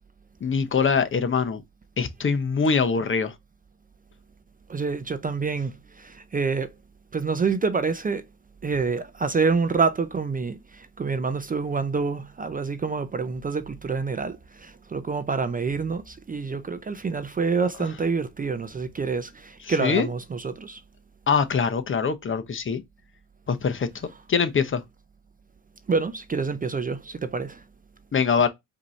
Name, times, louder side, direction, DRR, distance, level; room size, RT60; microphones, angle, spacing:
voice 1, 0.4-1.6 2.0-3.3 19.6-20.1 21.3-22.8 23.5-23.9 24.3-24.8 28.1-28.5, left 5 dB, 35° left, 0.8 m, -23 dB
voice 2, 4.7-6.7 7.1-8.2 8.6-20.8 25.9-27.6, right 4 dB, 25° right, 0.5 m, -27 dB
5.0 x 2.8 x 3.1 m
cardioid pair, 80°, 35 cm